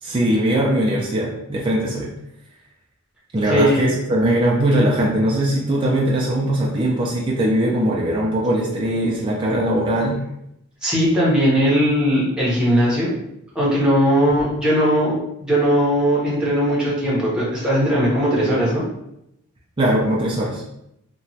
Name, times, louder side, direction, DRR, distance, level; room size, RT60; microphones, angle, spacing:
voice 1, 0.0-2.1 3.3-10.2 19.8-20.6, right 1 dB, 20° right, -3 dB, 0.4 m, -20 dB
voice 2, 3.5-4.0 10.8-13.1 13.5-18.8, equal, 5° right, -7 dB, 0.7 m, -19 dB
2.9 x 2.2 x 2.7 m, 0.80 s
head